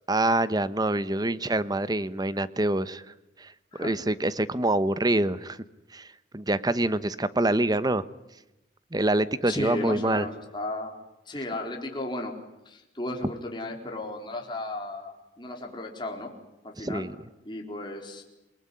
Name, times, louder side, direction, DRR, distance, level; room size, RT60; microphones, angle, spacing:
voice 1, 0.1-3.0 3.4-3.5 3.8-5.6 5.9-6.1 6.3-8.0 8.9-10.3 16.8-17.1, right 1 dB, 20° right, 16 dB, 1.0 m, -25 dB
voice 2, 9.4-11.0 11.3-12.3 12.7-16.3 16.6-17.1 17.4-18.2, left 2 dB, 25° left, 2 dB, 4.2 m, -34 dB
28.0 x 20.5 x 9.9 m, 0.93 s
head